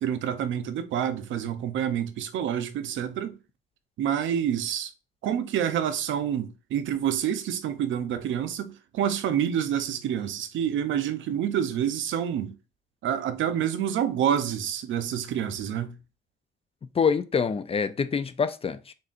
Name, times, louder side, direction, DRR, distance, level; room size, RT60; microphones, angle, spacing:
voice 1, 0.0-3.4 4.0-4.9 5.2-12.5 13.0-16.0, right 9 dB, 75° right, 0.6 m, -28 dB
voice 2, 16.9-18.9, left 6 dB, 30° left, 0.4 m, -26 dB
4.0 x 3.9 x 2.5 m
cardioid pair, 90°, 20 cm